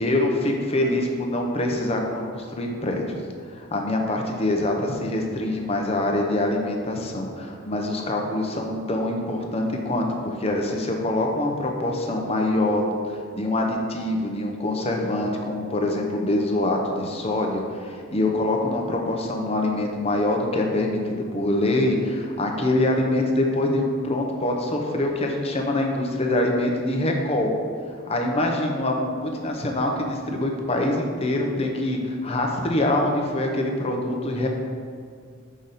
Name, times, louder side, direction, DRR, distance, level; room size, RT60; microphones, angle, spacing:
voice 1, 0.0-3.2 3.4-27.5 28.1-34.5, left 1 dB, 30° left, 1 dB, 0.7 m, -24 dB
5.9 x 5.0 x 4.1 m, 2.1 s
head